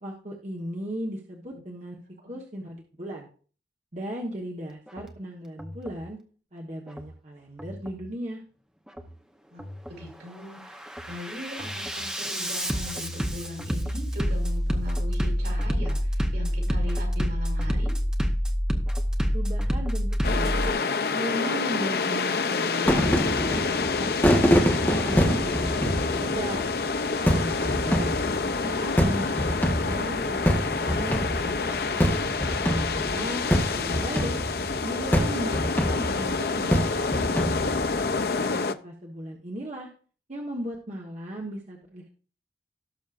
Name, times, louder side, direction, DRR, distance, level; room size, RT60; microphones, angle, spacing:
voice 1, 0.0-2.0 2.3-3.3 3.9-6.2 6.5-8.4 19.3-20.8 21.1-26.7 27.4-28.2 28.6-31.9 32.6-34.4 34.8-37.5 38.5-39.9 40.3-42.1, equal, 40° right, -1 dB, 1.3 m, -36 dB
Bass drum, 4.9-5.1 5.6-6.1 6.9-7.1 7.6-8.1 8.9-9.1 9.6-10.1 10.5-20.7, equal, 5° right, 0.8 m, -28 dB
voice 2, 9.5-17.9, left 1 dB, 75° right, -1 dB, 5.5 m, -40 dB
sound 1, 20.2-38.7, left 4 dB, 60° left, 0.6 m, -28 dB
sound 2, 22.8-38.6, equal, 10° left, 1.3 m, -26 dB
17.5 x 6.3 x 2.5 m, 0.40 s
head